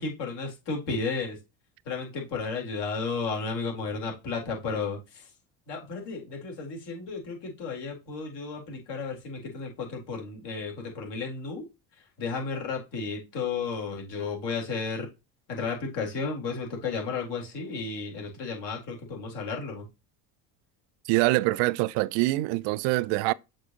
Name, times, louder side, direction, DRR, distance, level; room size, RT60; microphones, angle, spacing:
voice 1, 0.0-1.4 1.9-5.3 5.7-11.6 12.2-15.1 15.5-19.9, left 4 dB, 65° left, 3.9 m, -33 dB
voice 2, 21.1-23.3, right 20 dB, 70° right, 0.6 m, -24 dB
6.5 x 6.0 x 2.9 m
supercardioid pair, 85°, 44 cm